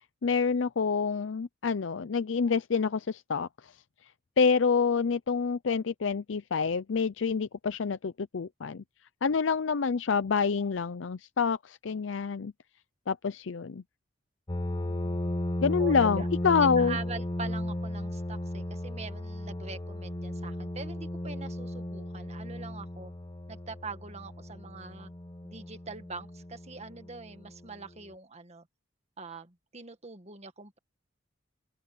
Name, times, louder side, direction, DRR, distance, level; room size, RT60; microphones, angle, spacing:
voice 1, 0.2-3.7 4.4-8.8 9.2-12.5 13.1-13.8 15.6-17.0, left 5 dB, 80° left, 0.5 m, -27 dB
sound 1, 14.5-27.8, left 1 dB, 25° left, 0.9 m, -35 dB
voice 2, 15.8-16.3 16.6-23.1 23.5-25.1 25.4-28.7 29.2-30.8, right 3 dB, 35° right, 1.8 m, -43 dB
open air
head